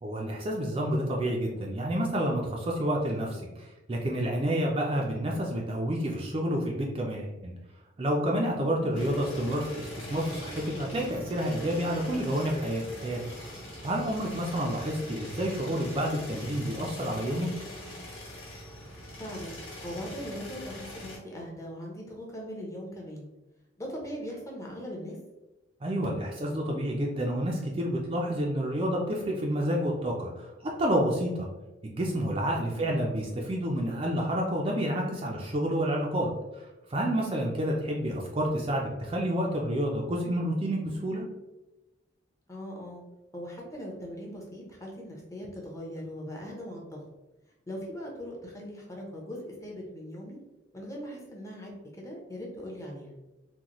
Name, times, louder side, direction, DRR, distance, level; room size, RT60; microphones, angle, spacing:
voice 1, 0.0-7.5 8.0-13.2 13.8-17.5 25.8-30.5 30.8-31.5 31.8-41.3, equal, 30° right, -1 dB, 0.4 m, -29 dB
voice 2, 8.6-9.1 19.2-23.3 23.8-25.2 32.7-33.0 42.5-43.0 43.3-47.0 47.7-50.4 50.7-53.1, equal, 15° left, -2 dB, 0.7 m, -40 dB
sound 1, 8.9-21.2, equal, 85° left, 1.5 m, -42 dB
3.8 x 2.1 x 2.9 m, 1.0 s
head